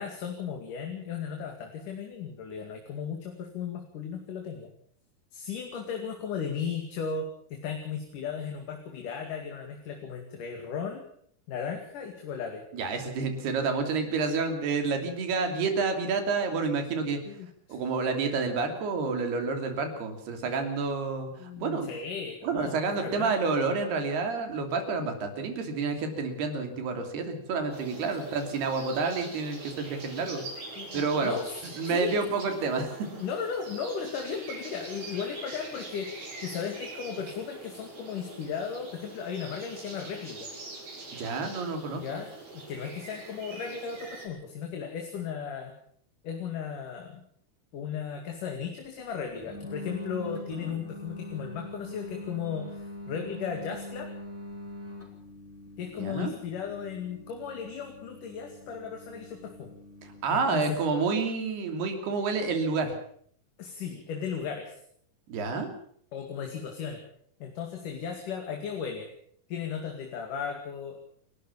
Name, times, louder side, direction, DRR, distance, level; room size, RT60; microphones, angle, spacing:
voice 1, 0.0-4.7 5.3-11.0 11.5-12.6 17.3-17.8 21.4-23.3 30.8-32.3 33.2-36.1 36.4-40.5 41.9-45.7 46.2-47.2 47.7-54.1 55.8-59.7 60.3-60.8 63.6-64.8 66.1-67.0 67.4-69.1 69.5-71.0, left 6 dB, 60° left, 3 dB, 3.7 m, -36 dB
voice 2, 12.7-17.2 17.7-21.9 22.4-30.4 30.9-31.4 31.8-33.1 41.1-42.0 56.0-56.3 60.2-62.9 65.3-65.7, right 4 dB, 85° right, 6 dB, 5.0 m, -29 dB
sound 1, 27.7-44.3, right 3 dB, 65° right, 9.6 m, -44 dB
sound 2, 49.4-60.2, left 1 dB, 5° right, 4.8 m, -43 dB
29.5 x 12.5 x 7.2 m, 0.62 s
omnidirectional pair, 4.5 m